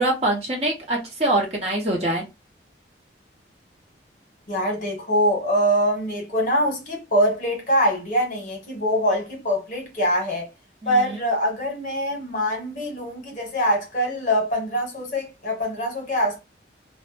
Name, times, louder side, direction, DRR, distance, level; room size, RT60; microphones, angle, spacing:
voice 1, 0.0-2.2 10.8-11.2, right 1 dB, 35° right, 0.7 m, -24 dB
voice 2, 4.5-10.5 10.9-16.4, equal, 45° left, 0.9 m, -23 dB
2.0 x 2.0 x 3.1 m
head